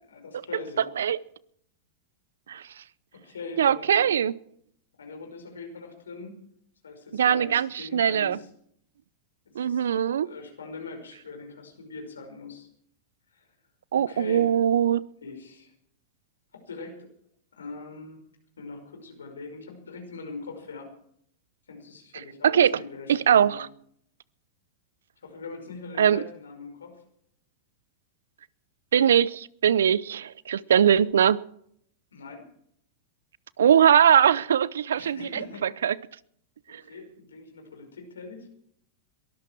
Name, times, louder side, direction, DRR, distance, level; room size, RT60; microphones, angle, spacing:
voice 1, 0.1-0.9 3.1-4.0 5.0-6.4 6.8-8.5 9.5-9.9 10.2-12.7 13.3-13.5 13.9-14.5 15.2-15.7 16.5-17.1 17.6-18.2 18.6-20.9 21.7-23.6 25.2-27.0 32.1-32.4 35.0-35.7 36.9-38.5, left 4 dB, 85° left, 5.3 m, -41 dB
voice 2, 3.6-4.3 7.1-8.4 9.6-10.3 13.9-15.0 22.4-22.7 23.1-23.7 26.0-26.2 28.9-31.4 33.6-35.9 36.7-36.8, right 9 dB, 80° right, 0.6 m, -21 dB
22.0 x 13.5 x 4.6 m
hypercardioid pair, 105°, 0 cm